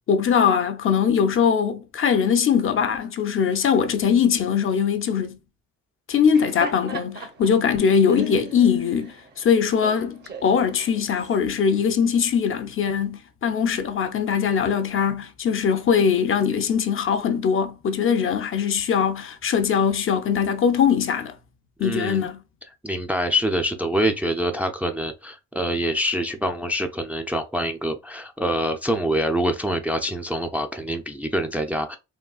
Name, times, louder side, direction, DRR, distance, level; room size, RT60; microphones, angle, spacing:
voice 1, 0.1-5.4 6.1-21.4 21.8-22.4, left 7 dB, 45° left, 0.5 m, -21 dB
Laughter, 6.1-11.4, right 3 dB, 35° right, 0.8 m, -39 dB
voice 2, 21.8-22.2 22.8-32.0, equal, 5° right, 0.4 m, -25 dB
3.6 x 2.2 x 2.3 m
cardioid pair, 90°, 30 cm